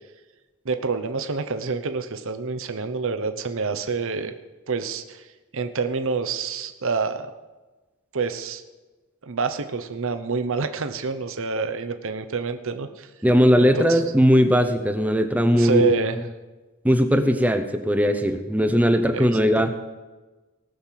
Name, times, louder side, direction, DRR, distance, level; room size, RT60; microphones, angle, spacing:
voice 1, 0.6-4.3 4.7-5.3 5.5-7.3 8.1-8.6 9.2-13.1 13.6-14.0 15.5-16.2 19.1-19.3 19.6-19.7, right 4 dB, 65° right, 9 dB, 0.8 m, -27 dB
voice 2, 13.2-15.8 16.8-19.7, equal, 5° right, 7 dB, 0.8 m, -19 dB
19.0 x 6.6 x 5.8 m, 1.2 s
head